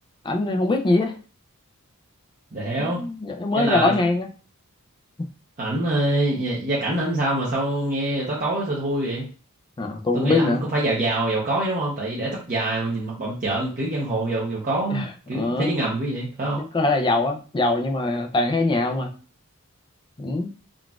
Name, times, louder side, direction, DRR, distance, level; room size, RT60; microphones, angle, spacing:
voice 1, 0.2-1.2 2.8-4.3 9.8-10.6 14.9-15.1 15.3-15.8 16.7-19.1 20.2-20.5, left 2 dB, 20° left, 4 dB, 0.4 m, -22 dB
voice 2, 2.5-3.0 3.5-3.9 5.6-9.3 10.1-16.6, right 1 dB, 40° right, -6 dB, 0.7 m, -25 dB
3.8 x 2.4 x 2.3 m, 0.37 s
head